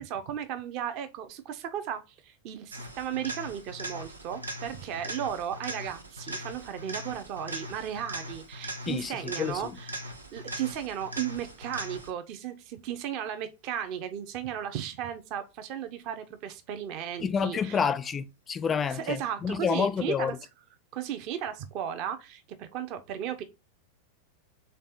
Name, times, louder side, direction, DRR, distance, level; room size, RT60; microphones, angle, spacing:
voice 1, 0.0-9.9 10.3-17.8 18.9-20.4 20.9-23.4, right 9 dB, 40° right, 0.5 m, -35 dB
sound 1, 2.7-12.3 20.3-20.4, right 1 dB, 80° right, 0.7 m, -40 dB
voice 2, 8.9-9.8 17.2-20.3, left 6 dB, 20° left, 0.4 m, -29 dB
3.4 x 3.2 x 4.0 m
figure-of-eight pair, 90°, 0 cm